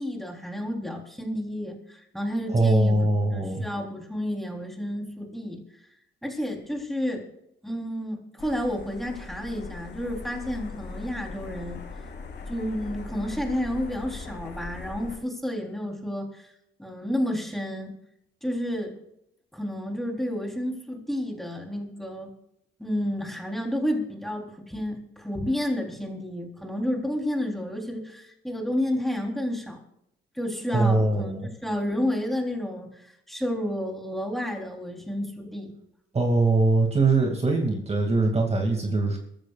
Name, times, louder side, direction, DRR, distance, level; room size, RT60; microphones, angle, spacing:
voice 1, 0.0-5.6 6.2-7.3 7.6-11.8 12.5-16.5 16.8-17.9 18.4-19.0 19.5-22.3 22.8-29.8 30.4-35.7, equal, ahead, 1 dB, 3.7 m, -31 dB
voice 2, 2.5-3.6 30.7-31.4 36.1-39.2, right 2 dB, 30° right, 2 dB, 2.4 m, -22 dB
sound 1, 8.4-15.2, left 4 dB, 60° left, 3.4 m, -40 dB
22.5 x 14.5 x 2.5 m, 0.78 s
cardioid pair, 90°, 20 cm